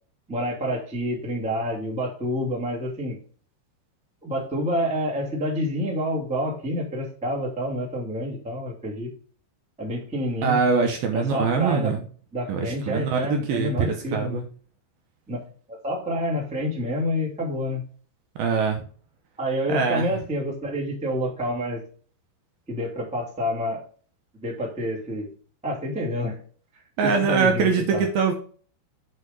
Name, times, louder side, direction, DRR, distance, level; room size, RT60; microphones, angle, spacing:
voice 1, 0.3-3.2 4.2-9.1 9.8-10.6 11.1-11.9 12.3-14.4 15.3-15.4 15.7-17.8 19.4-21.8 22.7-23.8 24.4-25.3 25.6-26.4 27.0-28.0, equal, 10° right, -3 dB, 0.3 m, -28 dB
voice 2, 10.4-12.0 12.5-14.4 18.4-18.8 19.7-20.1 27.0-28.3, right 5 dB, 75° right, 3 dB, 2.3 m, -23 dB
6.6 x 5.5 x 5.2 m, 0.43 s
omnidirectional pair, 5.2 m